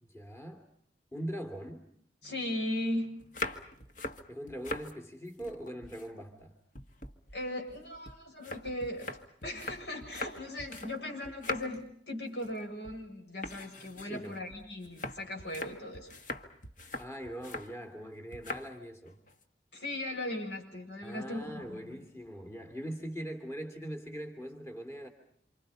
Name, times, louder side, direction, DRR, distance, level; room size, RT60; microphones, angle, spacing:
voice 1, 0.0-0.7 1.1-1.9 4.3-6.5 14.0-14.4 17.0-19.2 21.0-25.1, equal, 15° left, 5 dB, 2.8 m, -41 dB
voice 2, 2.2-3.1 7.3-9.1 9.4-16.1 19.7-22.0, left 1 dB, 80° left, 3 dB, 7.4 m, -38 dB
sound 1, 3.2-4.9 5.3-6.5 6.8-11.0 11.2-11.9 12.3-12.6 12.8-13.0 13.4-17.7 18.3-18.7 19.1-19.4, left 2 dB, 45° left, 1.7 m, -42 dB
29.0 x 27.5 x 5.6 m, 0.67 s
head